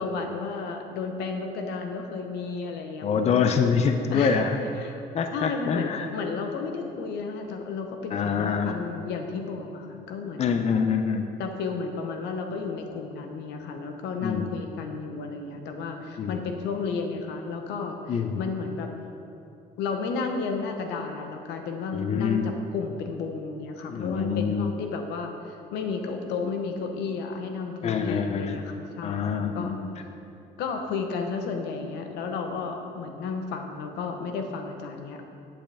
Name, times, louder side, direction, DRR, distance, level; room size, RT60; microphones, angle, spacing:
voice 1, 0.0-3.6 4.1-4.4 4.8-5.0 5.3-10.6 11.4-18.9 19.8-29.7 30.6-35.2, left 4 dB, 85° left, 4 dB, 1.0 m, -33 dB
voice 2, 3.0-4.6 5.1-6.1 8.1-8.8 10.4-11.3 14.2-14.5 16.2-16.4 18.1-18.4 21.9-22.5 23.9-24.7 27.8-28.6 29.0-30.0, left 6 dB, 40° left, 6 dB, 0.6 m, -25 dB
10.0 x 8.8 x 3.5 m, 2.6 s
cardioid pair, 110°, 17 cm